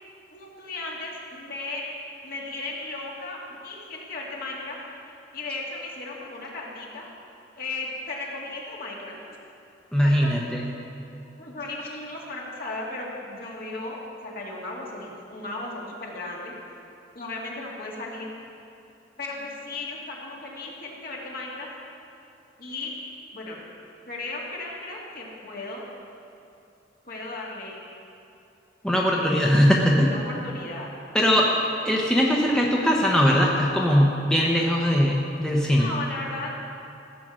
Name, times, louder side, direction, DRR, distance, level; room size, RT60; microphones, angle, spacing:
voice 1, 0.3-1.8 2.2-4.8 5.0-7.1 7.6-9.1 10.0-10.6 11.4-16.6 17.1-18.3 19.2-21.7 22.6-22.9 23.3-23.6 24.0-25.8 27.0-27.8 29.1-29.5 30.0-30.9 31.4-31.5 35.6-36.5, left 2 dB, 55° left, -3 dB, 2.2 m, -36 dB
voice 2, 9.9-10.6 28.8-30.1 31.1-31.5 31.8-35.9, equal, 5° left, -3 dB, 0.9 m, -20 dB
15.0 x 7.6 x 6.3 m, 2.8 s
head